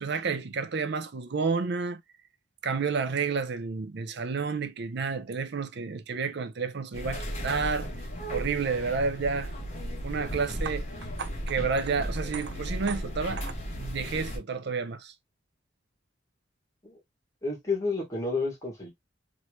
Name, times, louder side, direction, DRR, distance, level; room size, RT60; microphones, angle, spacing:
voice 1, 0.0-2.0 2.6-7.9 8.3-9.5 10.0-10.9 11.2-15.1, right 5 dB, 60° right, 0.5 m, -30 dB
sound 1, 6.9-14.4, equal, 35° left, 1.2 m, -35 dB
voice 2, 17.4-18.9, left 3 dB, 20° left, 1.5 m, -30 dB
3.0 x 2.8 x 3.1 m
head